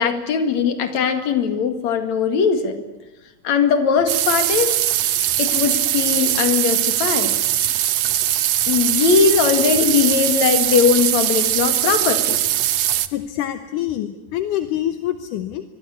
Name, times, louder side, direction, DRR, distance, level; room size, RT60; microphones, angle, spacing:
voice 1, 0.0-2.8 3.4-4.8 5.4-7.3 8.7-12.4, left 6 dB, 60° left, 7 dB, 3.3 m, -19 dB
sound 1, 4.1-13.1, right 12 dB, 65° right, 1.9 m, -20 dB
voice 2, 13.1-15.6, left 12 dB, 75° left, 9 dB, 2.5 m, -26 dB
26.0 x 22.0 x 8.3 m, 1.1 s
omnidirectional pair, 3.7 m